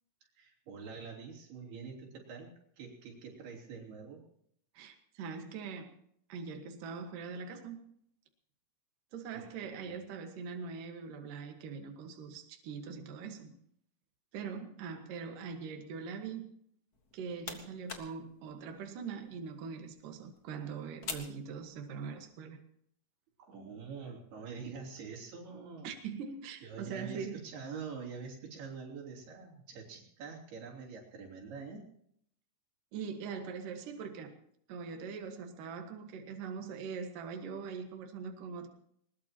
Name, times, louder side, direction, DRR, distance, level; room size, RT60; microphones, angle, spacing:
voice 1, 0.4-2.5 2.8-4.2 9.3-10.0 23.4-25.9 26.6-31.9, right 5 dB, 85° right, -2 dB, 5.4 m, -45 dB
voice 2, 4.7-6.0 6.3-7.8 9.1-13.6 14.3-16.5 17.1-22.6 25.8-27.4 32.9-34.4 34.7-38.7, right 5 dB, 65° right, 4 dB, 3.0 m, -42 dB
sound 1, 16.9-22.2, left 5 dB, 70° left, 0.9 m, -48 dB
21.0 x 20.5 x 3.0 m, 0.68 s
omnidirectional pair, 4.4 m